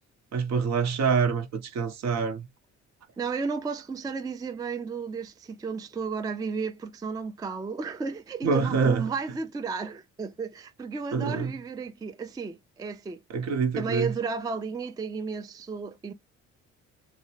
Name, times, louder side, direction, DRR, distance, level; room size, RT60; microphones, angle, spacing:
voice 1, 0.3-2.5 8.4-9.1 11.1-11.5 13.3-14.1, right 5 dB, 60° right, 0.7 m, -26 dB
voice 2, 3.2-13.2 13.8-16.1, right 5 dB, 15° right, 0.3 m, -33 dB
2.7 x 2.0 x 2.7 m
cardioid pair, 90°, 30 cm